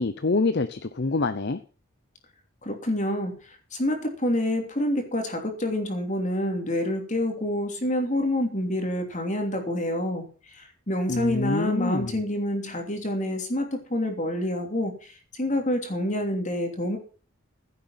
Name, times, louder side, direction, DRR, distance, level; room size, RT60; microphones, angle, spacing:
voice 1, 0.0-1.6 11.1-12.2, left 3 dB, 50° left, 0.7 m, -26 dB
voice 2, 2.6-17.0, left 1 dB, 35° left, 3.0 m, -27 dB
15.5 x 8.0 x 5.8 m
head